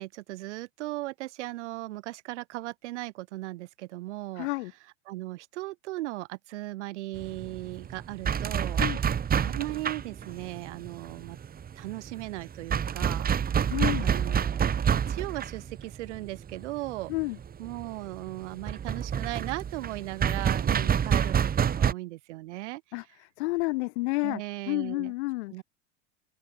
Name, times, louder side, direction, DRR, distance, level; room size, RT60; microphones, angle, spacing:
voice 1, 0.0-4.5 5.1-8.8 9.4-11.4 11.8-17.1 17.6-21.4 21.7-22.8 24.2-25.1 25.5-25.6, right 18 dB, 80° right, 2.7 m, -37 dB
voice 2, 4.4-4.7 8.8-9.0 13.7-14.1 17.1-17.4 22.9-24.4 24.7-25.6, left 23 dB, 70° left, 2.7 m, -30 dB
sound 1, 7.2-21.9, right 8 dB, 25° right, 2.1 m, -28 dB
open air
supercardioid pair, 115°, 35 cm